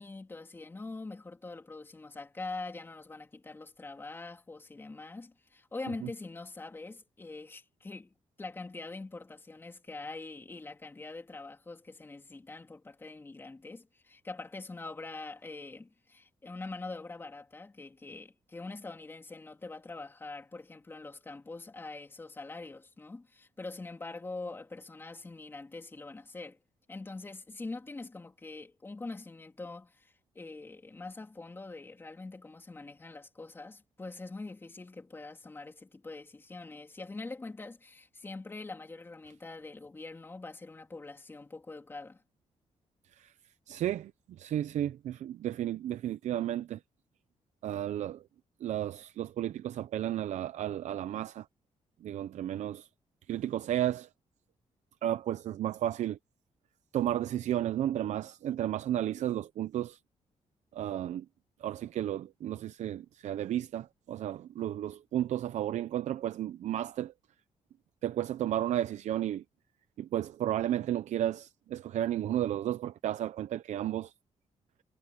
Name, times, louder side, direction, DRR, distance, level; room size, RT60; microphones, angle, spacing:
voice 1, 0.0-26.6 26.9-42.2, left 3 dB, 20° left, 3.4 m, -44 dB
voice 2, 43.7-44.1 44.4-46.8 47.6-48.2 48.6-51.5 52.0-52.9 53.3-54.1 55.0-56.2 56.9-60.0 60.7-61.2 61.6-67.1 68.0-69.4 70.0-74.1, right 12 dB, 80° right, 0.6 m, -33 dB
wide cardioid pair, 160°, 12 cm